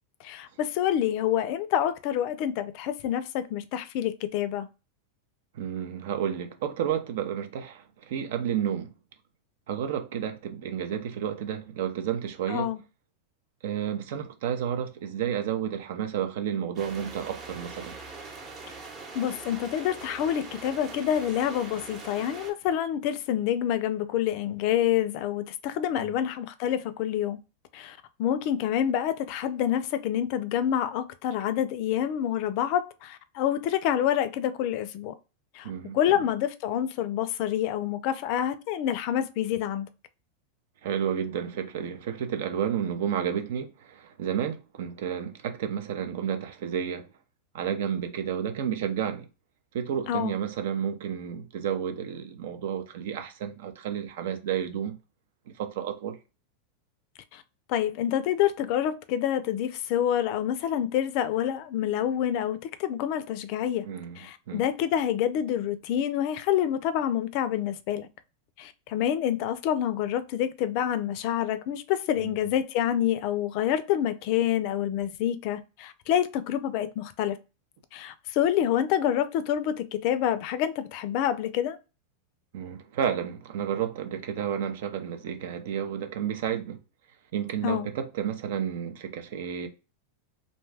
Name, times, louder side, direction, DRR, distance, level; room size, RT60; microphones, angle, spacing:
voice 1, 0.2-4.7 12.5-12.8 19.1-27.4 27.7-35.1 35.5-39.9 50.1-50.3 57.3-57.4 57.7-63.9 64.2-68.1 68.6-77.4 77.9-81.8 87.6-87.9, left 10 dB, 50° left, 0.4 m, -27 dB
voice 2, 5.5-8.9 9.7-12.7 13.6-18.0 26.0-26.1 35.6-36.0 40.8-47.1 47.5-49.3 49.7-54.9 55.5-56.2 63.8-64.2 64.5-64.6 72.2-72.4 82.5-86.8 87.3-89.7, right 9 dB, 70° right, 0.6 m, -31 dB
sound 1, 16.8-22.5, right 4 dB, 25° right, 0.8 m, -42 dB
2.6 x 2.2 x 3.2 m
supercardioid pair, 135°, 0 cm